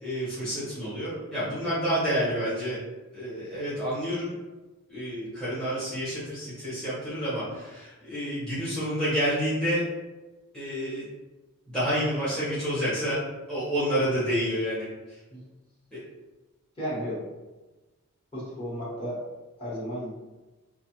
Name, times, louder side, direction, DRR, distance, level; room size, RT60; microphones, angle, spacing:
voice 1, 0.0-2.8 3.1-4.3 4.9-9.8 10.5-11.1 11.7-13.2 13.5-15.2 15.9-16.0, equal, 5° left, -13 dB, 0.8 m, -29 dB
voice 2, 16.8-17.2 18.3-19.2 19.6-20.2, equal, 25° left, -9 dB, 1.1 m, -33 dB
2.5 x 2.4 x 2.8 m, 1.2 s
head